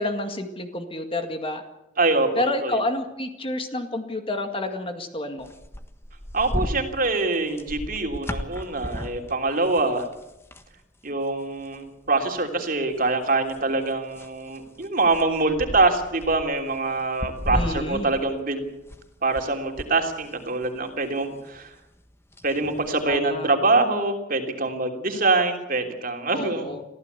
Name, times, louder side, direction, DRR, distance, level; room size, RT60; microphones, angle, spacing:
voice 1, 0.0-1.6 2.4-5.5 17.5-18.1 23.1-23.5 26.3-26.9, left 1 dB, 30° left, 6 dB, 2.0 m, -29 dB
voice 2, 2.0-2.3 2.6-2.7 6.3-10.1 11.0-18.6 19.2-21.7 22.4-26.7, right 3 dB, 45° right, 4 dB, 3.2 m, -24 dB
sound 1, 5.4-10.7 11.1-11.2 11.6-12.4 12.9-19.4 19.7-23.2, equal, 15° left, 1.3 m, -35 dB
24.0 x 15.5 x 8.3 m, 0.92 s
head